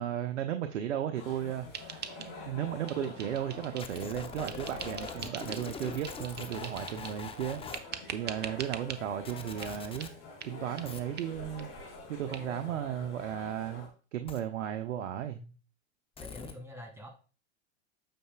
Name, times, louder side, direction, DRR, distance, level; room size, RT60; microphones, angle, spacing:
voice 1, 0.0-10.1 10.4-11.7 12.1-15.4, right 10 dB, 80° right, 0.8 m, -35 dB
sound 1, 1.1-13.9, left 3 dB, 55° left, 4.2 m, -47 dB
sound 2, 1.7-2.6 2.9-4.1 4.5-5.7 6.0-7.2 7.7-9.0 9.6-9.7 10.0-10.1 10.4-10.5 10.8-10.9 11.2-11.3 11.6-11.7 12.0-12.1 12.3-12.4, right 8 dB, 30° right, 0.9 m, -43 dB
sound 3, 3.8-7.8 9.2-10.1 10.8-11.0 14.3-14.4 16.2-16.5, left 5 dB, 15° left, 0.8 m, -43 dB
voice 2, 12.2-13.2 15.3-15.5 16.2-17.1, left 1 dB, 5° right, 2.7 m, -47 dB
9.0 x 6.7 x 2.3 m
hypercardioid pair, 105°, 35 cm